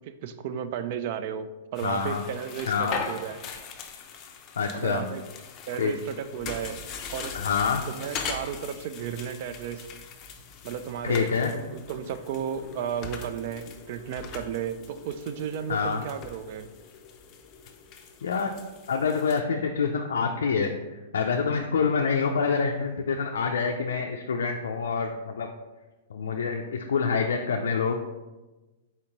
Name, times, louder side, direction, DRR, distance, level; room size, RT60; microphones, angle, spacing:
voice 1, 0.0-3.4 4.7-5.2 5.7-6.8 7.1-7.4 7.9-9.8 10.6-16.7, right 8 dB, 55° right, 11 dB, 0.3 m, -34 dB
sound 1, 1.7-19.4, left 5 dB, 30° left, 0.5 m, -41 dB
voice 2, 1.8-2.2 2.7-3.0 4.6-5.1 5.8-5.9 7.3-7.8 11.0-11.5 15.7-16.0 18.2-18.5 18.9-25.5 26.1-28.1, left 5 dB, 85° left, 3 dB, 0.3 m, -26 dB
4.2 x 2.9 x 3.9 m, 1.1 s
hypercardioid pair, 135°, 0 cm